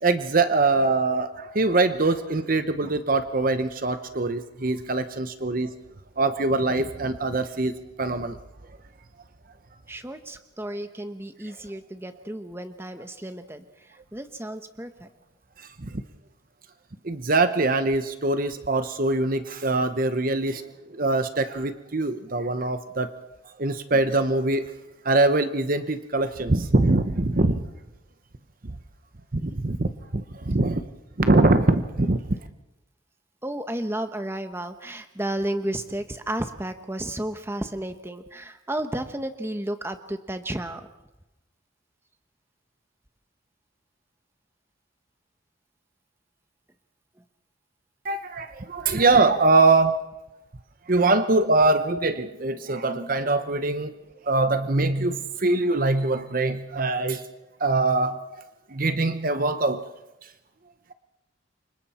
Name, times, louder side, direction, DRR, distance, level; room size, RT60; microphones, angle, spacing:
voice 1, 0.0-5.7 6.2-8.4 15.6-16.0 17.0-23.1 23.6-24.7 25.0-27.6 28.6-28.8 29.3-30.9 31.2-32.4 48.0-50.1 50.9-54.0 54.2-57.3 57.6-59.9 60.2-60.3, right 2 dB, 45° right, 10 dB, 0.9 m, -23 dB
voice 2, 9.9-15.1 33.4-40.9, right 1 dB, 10° right, 8 dB, 1.1 m, -32 dB
29.0 x 25.0 x 4.3 m, 0.97 s
head